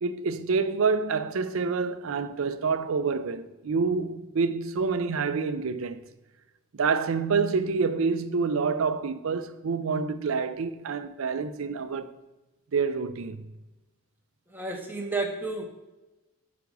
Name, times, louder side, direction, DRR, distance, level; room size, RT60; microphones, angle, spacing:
voice 1, 0.0-6.0 6.7-12.1 12.7-13.4, right 5 dB, 75° right, 0.5 m, -27 dB
voice 2, 14.5-15.6, right 3 dB, 10° right, 0.6 m, -31 dB
5.9 x 4.7 x 5.2 m
head